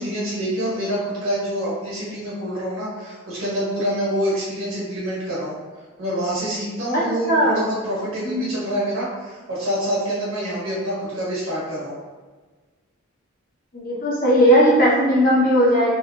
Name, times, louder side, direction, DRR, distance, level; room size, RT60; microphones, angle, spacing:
voice 1, 0.0-5.6 6.0-12.0, equal, 90° right, -8 dB, 1.5 m, -26 dB
voice 2, 13.7-15.9, equal, 45° left, -7 dB, 0.8 m, -17 dB
3.6 x 2.0 x 2.4 m, 1.3 s
head